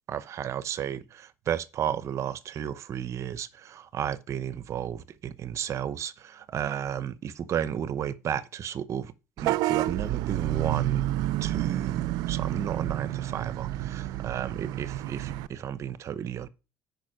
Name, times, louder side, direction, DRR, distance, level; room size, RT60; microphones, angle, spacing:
voice 1, 0.1-9.1 9.4-11.0 11.4-16.5, right 9 dB, 45° right, 0.8 m, -33 dB
Vehicle horn car horn honking / Bus, 9.4-15.5, right 15 dB, 70° right, 0.5 m, -29 dB
9.0 x 5.4 x 6.3 m
cardioid pair, 120°, 7 cm